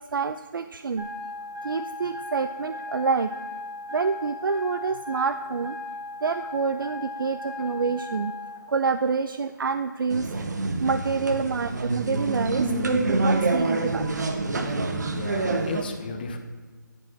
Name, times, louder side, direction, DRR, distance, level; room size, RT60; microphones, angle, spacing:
voice 1, 0.1-1.1 1.6-3.3 3.9-5.8 6.2-8.3 8.7-10.3 10.8-14.1 15.1-15.3, right 5 dB, 80° right, 10 dB, 0.4 m, -27 dB
sound 1, 1.0-8.6, left 2 dB, 20° right, 1.6 m, -37 dB
sound 2, 10.1-15.8, right 2 dB, 60° right, 1.0 m, -26 dB
voice 2, 14.8-16.4, left 4 dB, 25° left, 5 dB, 0.6 m, -35 dB
10.5 x 4.8 x 5.9 m, 1.5 s
hypercardioid pair, 165°, 11 cm